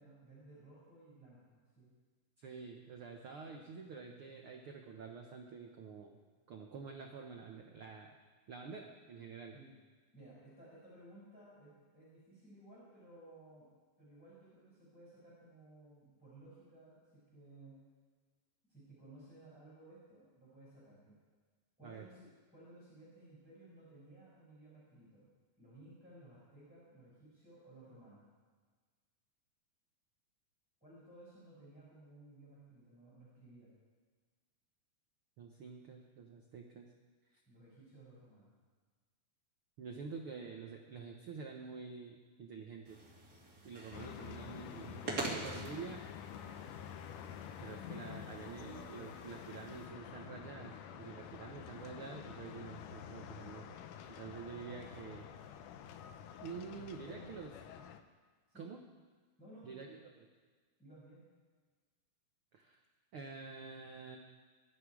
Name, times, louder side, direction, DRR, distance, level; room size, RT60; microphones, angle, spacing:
voice 1, 0.0-1.9 9.5-9.8 10.1-13.7 14.0-17.8 18.7-21.2 21.8-25.3 25.6-28.3 30.8-33.8 37.5-38.6 57.0-57.3 58.5-58.7 59.4-60.0 60.8-61.2, right 1 dB, ahead, -9 dB, 6.4 m, -58 dB
voice 2, 2.4-6.2 6.5-8.1 8.5-9.5 21.8-22.0 35.4-36.9 37.3-37.4 39.8-43.0 43.6-45.2 45.4-46.1 47.6-53.7 54.1-55.2 56.4-57.5 58.5-58.8 59.6-59.9 60.2-60.3 62.5-62.8 63.1-64.2, right 5 dB, 85° right, 2 dB, 1.2 m, -48 dB
sound 1, 42.8-49.9, right 2 dB, 30° right, 2.8 m, -46 dB
sound 2, 43.9-58.0, left 9 dB, 75° left, 2.2 m, -49 dB
23.5 x 12.5 x 4.9 m, 1.5 s
omnidirectional pair, 4.1 m